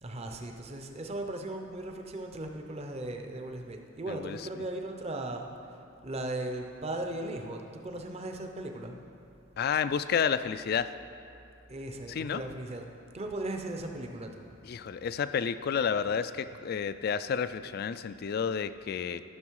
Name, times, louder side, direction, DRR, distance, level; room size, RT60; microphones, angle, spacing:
voice 1, 0.0-8.9 11.7-12.8 13.1-14.5, right 1 dB, 30° right, 3 dB, 0.7 m, -37 dB
voice 2, 4.1-4.4 9.6-10.9 12.1-12.4 14.7-19.2, left 7 dB, 50° left, 13 dB, 0.3 m, -30 dB
13.5 x 6.3 x 4.7 m, 2.7 s
head